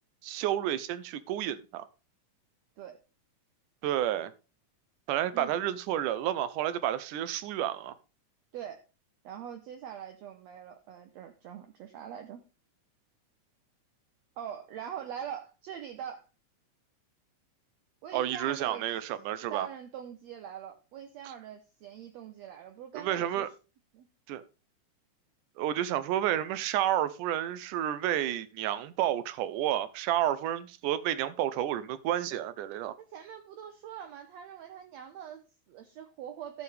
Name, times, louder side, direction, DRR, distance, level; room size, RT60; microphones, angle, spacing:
voice 1, 0.2-1.9 3.8-4.3 5.1-7.9 18.1-19.7 22.9-23.5 24.3-24.4 25.6-33.0, right 12 dB, 85° right, 2.3 m, -30 dB
voice 2, 9.2-12.4 14.4-16.3 18.0-19.1 19.5-23.5 23.9-24.1 33.0-36.6, right 9 dB, 70° right, 1.8 m, -43 dB
13.0 x 7.0 x 3.3 m
omnidirectional pair, 3.6 m